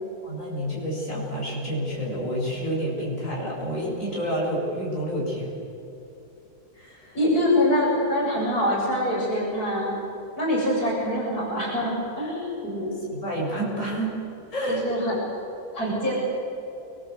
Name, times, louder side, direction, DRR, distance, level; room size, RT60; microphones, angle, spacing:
voice 1, 0.2-5.5 6.7-7.2 13.1-14.1 14.5-14.9, right 1 dB, 55° left, -5 dB, 7.8 m, -29 dB
voice 2, 7.1-10.0 10.4-13.0 14.7-15.2 15.7-16.2, left 1 dB, 75° left, -4 dB, 7.4 m, -24 dB
29.5 x 21.5 x 7.8 m, 2.9 s
omnidirectional pair, 1.6 m